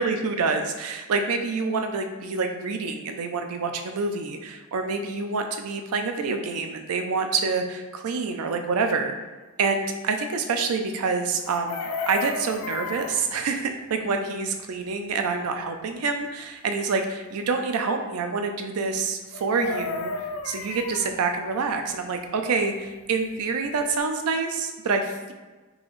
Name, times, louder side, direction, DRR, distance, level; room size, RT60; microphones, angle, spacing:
voice 1, 0.0-9.2 9.6-20.1 20.4-25.3, right 4 dB, 90° right, 5 dB, 0.4 m, -27 dB
Chicken rooster, 11.4-13.3 19.3-21.1 23.4-23.5 23.7-24.0, left 4 dB, 80° left, 0.4 m, -33 dB
3.8 x 2.5 x 3.1 m, 1.2 s
head